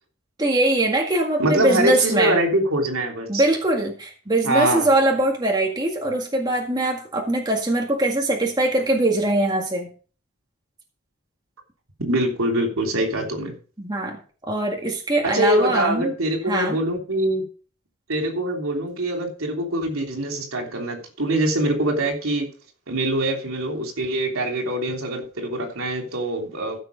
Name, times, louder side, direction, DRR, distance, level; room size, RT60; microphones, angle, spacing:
voice 1, 0.4-2.3 3.3-9.9 13.8-14.2 14.5-16.1 16.5-16.8, right 1 dB, 20° right, 1 dB, 1.9 m, -22 dB
voice 2, 1.4-3.4 4.4-4.9 12.0-13.5 15.2-17.4 18.1-22.5 22.9-26.8, right 1 dB, 80° right, 2 dB, 3.2 m, -24 dB
14.5 x 6.2 x 5.2 m, 0.38 s
head